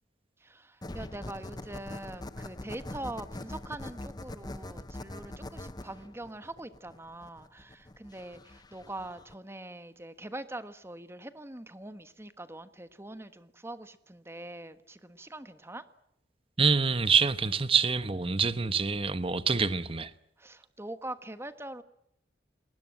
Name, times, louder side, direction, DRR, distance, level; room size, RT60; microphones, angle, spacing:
voice 1, 0.4-15.8 20.4-21.8, right 1 dB, 15° right, 1.3 m, -43 dB
sound 1, 0.8-9.3, left 1 dB, 25° left, 0.9 m, -43 dB
voice 2, 16.6-20.1, right 5 dB, 30° right, 1.0 m, -26 dB
27.5 x 20.0 x 7.7 m
head